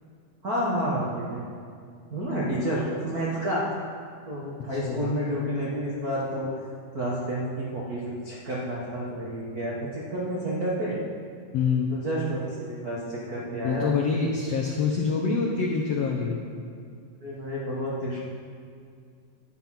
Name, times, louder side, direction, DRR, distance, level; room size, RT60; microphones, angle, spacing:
voice 1, 0.4-1.4 2.1-3.7 4.3-6.5 6.9-11.0 11.9-13.9 17.2-18.2, equal, 65° right, -6 dB, 0.9 m, -30 dB
voice 2, 4.7-5.2 11.5-12.0 13.6-16.4, left 5 dB, 80° left, 0 dB, 1.4 m, -26 dB
11.0 x 9.6 x 5.8 m, 2.3 s
omnidirectional pair, 4.2 m